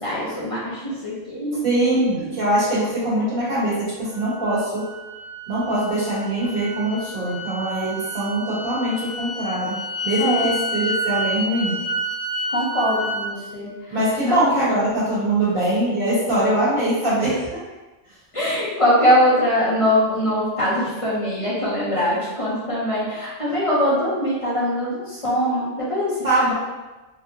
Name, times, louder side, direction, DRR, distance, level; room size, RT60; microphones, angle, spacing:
voice 1, 0.0-1.6 2.2-2.3 10.2-10.5 12.5-13.7 14.3-14.4 17.2-17.3 18.3-26.1 26.4-26.5, equal, 35° left, -8 dB, 0.5 m, -22 dB
voice 2, 1.6-4.9 5.5-9.8 10.0-11.8 13.9-17.6 26.2-26.5, right 1 dB, 50° right, -9 dB, 1.3 m, -22 dB
sound 1, 4.1-13.3, right 1 dB, 80° right, 1.2 m, -29 dB
3.5 x 2.1 x 2.8 m, 1.1 s
omnidirectional pair, 1.3 m